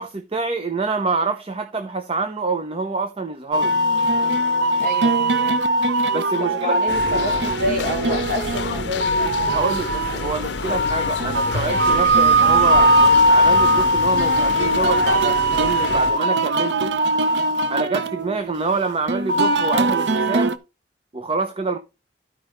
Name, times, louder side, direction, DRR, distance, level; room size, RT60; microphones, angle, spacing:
voice 1, 0.0-3.8 6.1-6.7 9.5-12.9 13.3-16.9 17.7-20.5 21.1-21.8, right 4 dB, 30° right, 0.7 m, -26 dB
sound 1, 3.5-20.6, right 1 dB, 75° right, 0.7 m, -20 dB
voice 2, 4.8-5.6 6.4-9.4 12.4-12.6, left 2 dB, 50° right, 3.2 m, -28 dB
sound 2, 6.9-16.1, left 4 dB, 80° left, 0.6 m, -29 dB
13.5 x 5.1 x 3.1 m
head